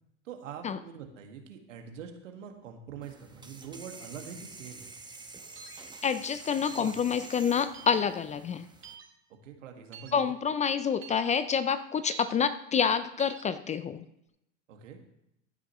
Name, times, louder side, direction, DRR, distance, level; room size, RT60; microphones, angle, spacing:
voice 1, 0.2-4.9 6.8-7.0 7.5-7.6 9.3-10.3 14.7-15.0, right 7 dB, 85° right, 4 dB, 1.9 m, -45 dB
sound 1, 3.0-8.9, right 3 dB, 10° right, 1.2 m, -48 dB
sound 2, 5.6-5.8 6.6-6.9 7.7-8.0 8.8-9.1 9.9-10.1 11.0-11.2 12.1-12.3 13.2-13.4, right 7 dB, 35° right, 2.0 m, -47 dB
voice 2, 6.0-8.7 10.1-14.0, left 7 dB, 20° left, 13 dB, 0.4 m, -28 dB
15.5 x 9.9 x 3.1 m, 0.82 s
hypercardioid pair, 100°, 37 cm